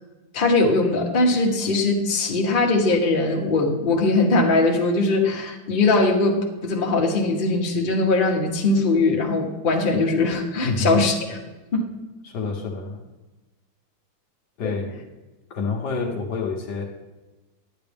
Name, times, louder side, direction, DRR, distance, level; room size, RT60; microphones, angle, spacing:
voice 1, 0.3-11.4 11.7-11.8 14.6-14.7, left 2 dB, 30° left, 0 dB, 1.2 m, -21 dB
voice 2, 10.6-11.0 12.2-13.0 14.6-15.0 15.5-16.8, left 4 dB, 65° left, 2 dB, 1.5 m, -27 dB
10.5 x 9.7 x 3.5 m, 1.1 s
omnidirectional pair, 2.1 m